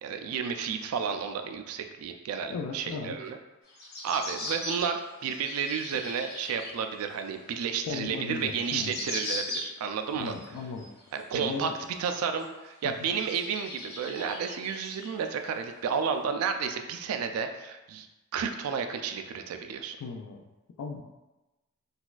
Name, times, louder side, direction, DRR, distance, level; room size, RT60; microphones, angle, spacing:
voice 1, 0.0-3.4 4.0-10.4 11.1-11.7 12.0-18.1 18.3-20.0, right 6 dB, 75° right, 7 dB, 0.3 m, -32 dB
voice 2, 2.5-3.2 7.9-9.0 10.1-10.9 11.3-11.7 12.8-13.1 20.0-20.4 20.8-21.0, left 4 dB, 90° left, 2 dB, 0.3 m, -36 dB
sound 1, 3.7-6.8 7.3-7.4 8.1-8.2 8.4-10.0 10.3-11.2 11.8-11.9 12.4-12.5 13.0-15.5 16.0-16.1, left 1 dB, 45° left, 0.7 m, -38 dB
4.0 x 2.3 x 2.4 m, 1.0 s
head